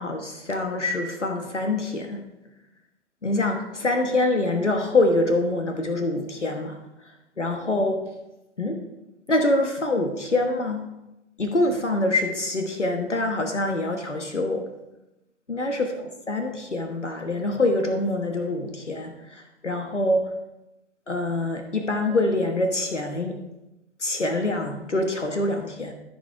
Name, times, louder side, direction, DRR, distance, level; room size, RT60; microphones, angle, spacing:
voice 1, 0.0-2.2 3.2-6.8 7.0-8.0 8.6-8.8 9.3-10.8 11.4-14.6 15.5-20.3 21.1-23.4 24.0-25.9, left 2 dB, 85° left, 4 dB, 1.3 m, -25 dB
14.5 x 5.5 x 4.6 m, 0.96 s
figure-of-eight pair, 120°, 35 cm